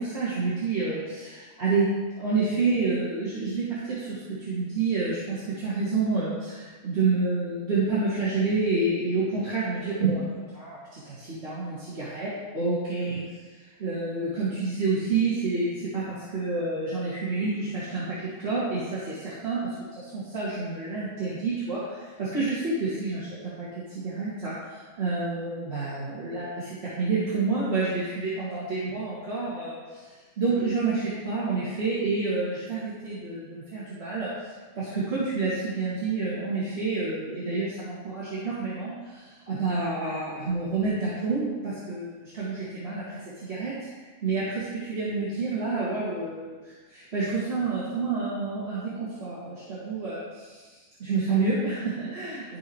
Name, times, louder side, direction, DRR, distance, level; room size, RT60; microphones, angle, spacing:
voice 1, 0.1-1.0 1.6-1.8 2.2-3.6 4.5-5.1 5.6-6.4 7.0-10.2 11.4-11.5 12.1-12.3 12.5-13.2 13.8-15.7 16.3-17.5 17.9-18.0 18.4-18.6 19.4-19.6 20.3-21.8 22.3-22.5 23.0-23.2 24.2-24.5 25.0-25.9 26.2-26.5 27.0-27.9 28.4-29.7 30.4-30.9 31.2-32.8 33.0-33.1 33.7-34.3 35.1-35.5 35.8-37.7 38.4-38.9 39.5-41.0 41.2-41.4 41.9-42.0 42.4-42.5 42.8-43.0 43.6-43.7 44.2-44.4 44.9-46.3 47.1-47.2 47.5-48.8 49.2-49.3 49.9-50.2 51.1-51.7 52.0-52.3, right 4 dB, 45° right, -12 dB, 2.5 m, -27 dB
13.0 x 4.9 x 3.2 m, 1.3 s
omnidirectional pair, 1.5 m